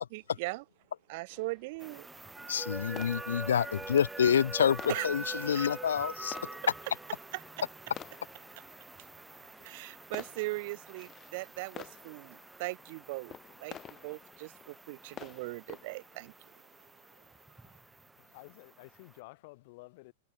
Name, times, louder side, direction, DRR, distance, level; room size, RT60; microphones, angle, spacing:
voice 1, 0.1-0.6 1.1-2.1 2.8-3.4 4.9-5.1 5.5-5.7 7.3-7.6 9.6-13.8 14.0-16.5, right 24 dB, 45° right, 0.7 m, -40 dB
sound 1, 1.3-16.4, left 10 dB, 25° left, 5.1 m, -52 dB
sound 2, 1.8-19.2, right 3 dB, 5° right, 4.1 m, -45 dB
voice 2, 2.5-6.4, left 8 dB, 65° left, 0.4 m, -28 dB
voice 3, 18.2-20.1, left 24 dB, 45° left, 5.2 m, -52 dB
figure-of-eight pair, 100°, 0 cm